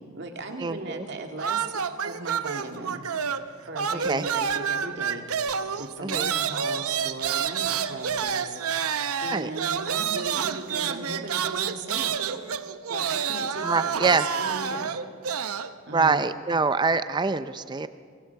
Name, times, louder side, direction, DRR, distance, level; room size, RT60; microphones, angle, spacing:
voice 1, 0.0-3.1 3.6-5.3 5.8-8.6 9.2-12.2 12.9-14.9 15.9-16.3, right 2 dB, 55° right, 3 dB, 2.3 m, -37 dB
voice 2, 0.6-1.1 4.0-4.3 6.0-6.3 9.3-9.5 13.6-14.3 15.9-17.9, right 4 dB, 20° right, 12 dB, 0.5 m, -25 dB
sound 1, 1.4-3.5 3.7-15.7, right 7 dB, 85° right, 0.8 m, -29 dB
29.0 x 24.0 x 4.7 m, 2.1 s
head